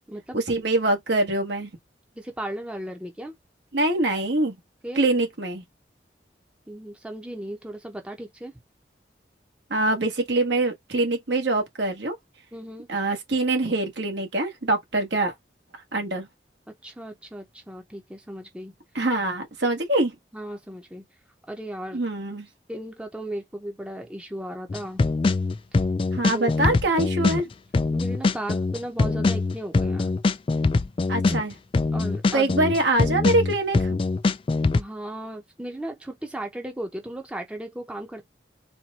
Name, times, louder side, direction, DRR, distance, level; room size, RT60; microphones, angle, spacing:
voice 1, 0.3-1.7 3.7-4.5 4.9-5.6 9.7-12.1 12.9-15.3 15.7-16.3 18.9-20.1 21.9-22.5 26.1-27.5 31.1-31.6 32.3-34.0, right 2 dB, 75° right, 1.6 m, -24 dB
voice 2, 2.1-3.3 4.8-5.0 6.7-8.5 12.5-12.9 16.8-18.7 20.3-21.0 21.5-22.0 22.7-25.0 25.7-25.8 26.3-26.6 27.9-30.1 31.9-32.6 34.7-38.3, right 1 dB, 5° right, 0.7 m, -36 dB
sound 1, 24.7-34.8, left 3 dB, 30° left, 0.3 m, -23 dB
4.3 x 2.6 x 4.1 m
head